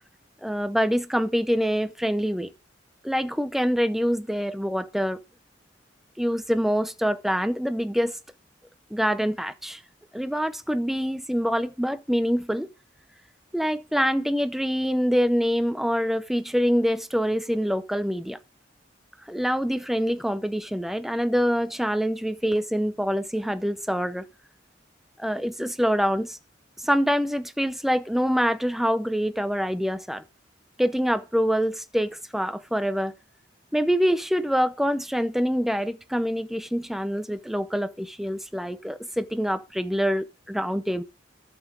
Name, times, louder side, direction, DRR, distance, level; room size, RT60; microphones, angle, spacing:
voice 1, 0.4-2.5 3.0-5.2 6.2-8.2 8.9-9.8 10.1-12.7 13.5-18.4 19.3-24.3 25.2-26.4 26.8-30.2 30.8-33.1 33.7-41.0, equal, ahead, 0.6 m, -25 dB
12.0 x 7.2 x 3.9 m
head